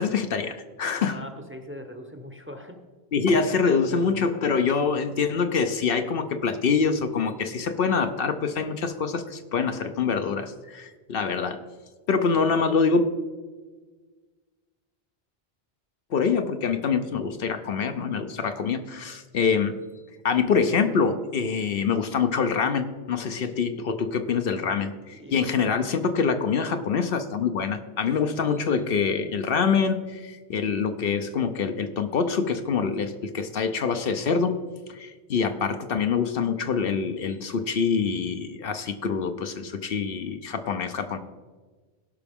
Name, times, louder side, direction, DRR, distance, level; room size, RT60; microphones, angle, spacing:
voice 1, 0.0-1.2 3.1-11.6 12.1-13.1 16.1-19.8 20.2-34.6 34.9-41.2, left 5 dB, 65° left, 8 dB, 0.8 m, -25 dB
voice 2, 1.0-2.8 25.1-25.7, equal, 15° right, 5 dB, 0.7 m, -41 dB
16.5 x 5.9 x 3.5 m, 1.4 s
omnidirectional pair, 1.1 m